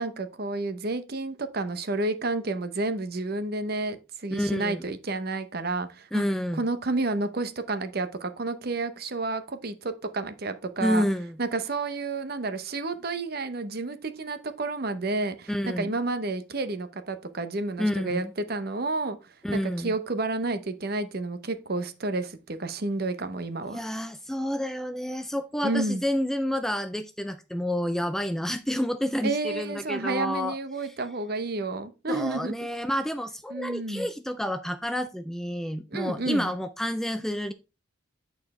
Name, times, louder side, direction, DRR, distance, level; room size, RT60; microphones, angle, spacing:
voice 1, 0.0-6.2 6.5-11.0 11.4-19.2 19.5-23.8 25.6-26.0 29.2-32.5 33.5-34.1 35.9-36.5, right 2 dB, 50° right, 0.8 m, -30 dB
voice 2, 4.3-4.8 6.1-6.6 10.8-11.4 15.5-15.9 17.8-18.3 19.4-19.9 23.7-30.9 32.1-37.5, equal, ahead, 0.3 m, -29 dB
8.8 x 4.5 x 4.1 m
head